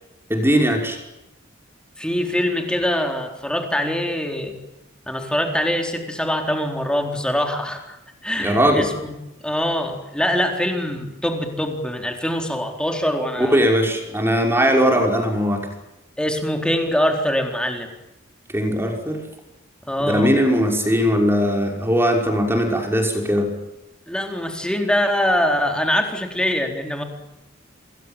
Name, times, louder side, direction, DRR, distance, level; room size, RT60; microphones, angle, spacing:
voice 1, 0.3-1.0 8.4-8.9 13.4-15.7 18.5-19.2 20.1-23.5, equal, 10° right, 2 dB, 5.7 m, -19 dB
voice 2, 2.0-4.6 5.1-8.0 8.2-9.2 9.4-13.6 16.2-17.9 19.9-20.3 24.1-27.0, equal, 5° left, 3 dB, 4.1 m, -23 dB
28.0 x 21.5 x 9.1 m, 0.93 s
head